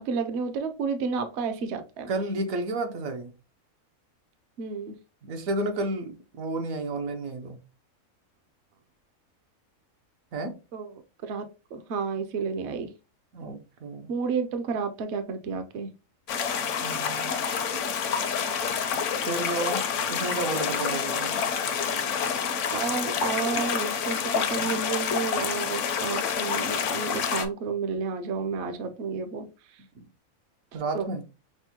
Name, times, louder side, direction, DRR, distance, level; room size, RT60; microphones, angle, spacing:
voice 1, 0.0-2.1 4.6-5.0 10.7-10.9 11.2-11.4 11.7-12.9 14.1-15.9 17.8-17.9 22.7-29.8 30.9-31.1, right 5 dB, 60° right, 0.8 m, -31 dB
voice 2, 2.1-3.3 5.2-7.6 10.3-10.6 13.3-14.1 16.8-17.4 19.3-21.4 24.6-24.8 29.9-30.0 30.7-31.2, right 2 dB, 75° right, 1.1 m, -32 dB
sound 1, 16.3-27.5, left 7 dB, 70° left, 0.9 m, -28 dB
6.0 x 2.1 x 2.8 m
omnidirectional pair, 1.4 m